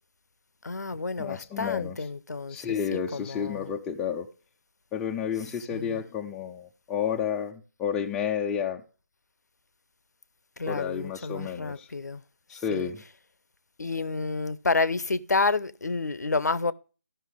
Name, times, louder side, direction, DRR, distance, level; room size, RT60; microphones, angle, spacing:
voice 1, 0.6-2.6 2.9-3.6 5.7-6.0 10.6-12.2 12.7-12.9 13.8-16.7, left 3 dB, 70° left, 0.5 m, -29 dB
voice 2, 1.2-2.0 2.5-4.3 4.9-8.8 10.7-11.9 12.5-13.0, left 7 dB, 5° left, 0.3 m, -31 dB
14.5 x 5.6 x 3.5 m
figure-of-eight pair, 145°, 10 cm